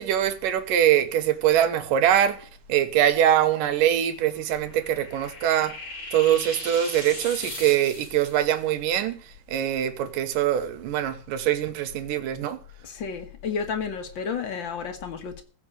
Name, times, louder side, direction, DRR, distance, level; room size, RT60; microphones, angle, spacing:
voice 1, 0.0-2.4 2.7-5.8 6.1-9.2 9.5-12.6, right 11 dB, 70° right, 2.6 m, -23 dB
sound 1, 4.3-8.4, left 1 dB, 35° left, 5.4 m, -39 dB
voice 2, 12.8-15.4, left 6 dB, 55° left, 1.3 m, -31 dB
15.5 x 6.3 x 8.5 m
omnidirectional pair, 4.4 m